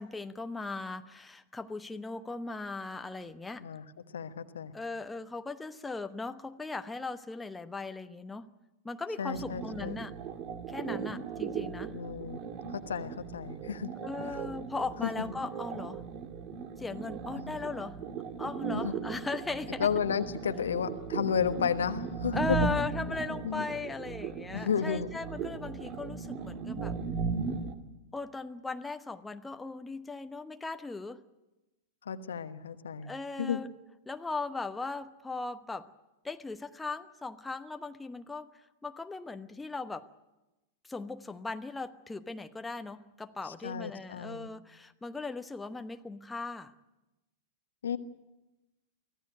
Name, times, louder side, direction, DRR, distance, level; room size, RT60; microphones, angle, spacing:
voice 1, 0.0-3.7 4.7-8.5 8.8-10.1 10.7-12.0 14.0-16.0 16.8-18.0 18.4-19.9 22.3-27.0 28.1-31.2 33.0-33.7 34.1-35.9 36.2-38.5 38.8-40.1 40.8-46.7, left 3 dB, 10° left, 8 dB, 1.0 m, -38 dB
voice 2, 4.1-4.7 9.2-10.0 11.9-12.4 12.7-13.9 14.3-14.4 15.0-15.3 17.4-17.5 18.7-18.9 19.8-22.7 23.4-23.6 24.5-25.1 32.1-33.1 33.4-33.6 43.4-44.5 47.8-48.0, left 7 dB, 70° left, 10 dB, 1.2 m, -32 dB
sound 1, 9.3-27.7, right 5 dB, 40° right, 1.9 m, -37 dB
24.5 x 15.5 x 9.3 m, 1.0 s
figure-of-eight pair, 95°, 0 cm